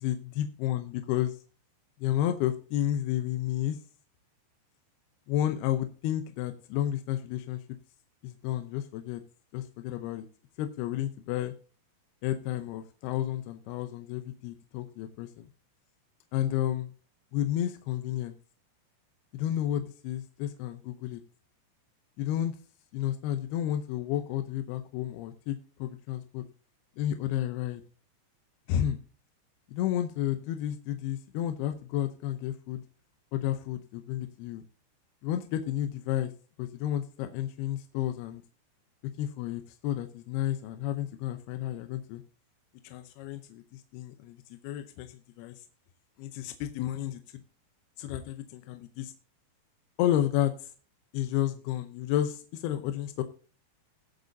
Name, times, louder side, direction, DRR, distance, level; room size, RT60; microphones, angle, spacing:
voice 1, 0.0-1.4 2.0-3.8 5.3-7.6 8.2-9.2 9.5-10.3 10.6-11.5 12.2-15.5 16.3-16.9 17.3-18.4 19.3-21.2 22.2-22.6 22.9-26.4 27.0-27.8 28.7-29.0 29.7-32.8 33.3-34.6 35.2-36.3 36.6-38.4 39.2-42.2 42.8-44.4 44.6-45.6 46.2-47.2 48.0-49.1 50.0-50.7 51.1-53.2, left 12 dB, 75° left, 7 dB, 2.5 m, -31 dB
21.0 x 7.8 x 2.7 m, 0.38 s
omnidirectional pair, 5.0 m